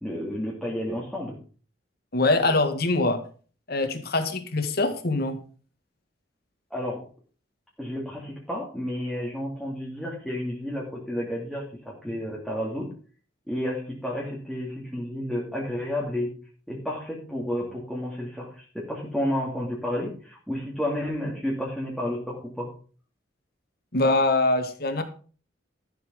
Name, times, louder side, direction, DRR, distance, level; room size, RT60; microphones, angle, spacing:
voice 1, 0.0-1.4 6.7-7.0 7.8-12.9 13.5-16.3 16.7-22.7, left 1 dB, ahead, -4 dB, 2.8 m, -31 dB
voice 2, 2.1-3.2 3.7-5.4 23.9-25.0, left 2 dB, 55° left, 7 dB, 1.9 m, -23 dB
13.5 x 7.4 x 5.3 m, 0.40 s
head